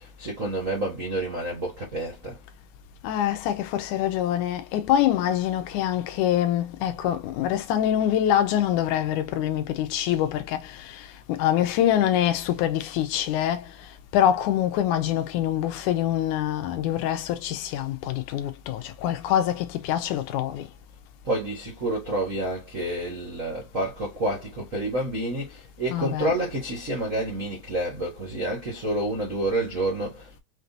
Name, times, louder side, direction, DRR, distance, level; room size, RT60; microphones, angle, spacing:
voice 1, 0.0-2.4 21.2-30.4, right 1 dB, 85° right, 0.7 m, -29 dB
voice 2, 3.0-20.7 25.9-26.3, left 11 dB, 75° left, 2.0 m, -25 dB
6.0 x 2.9 x 2.7 m
omnidirectional pair, 4.1 m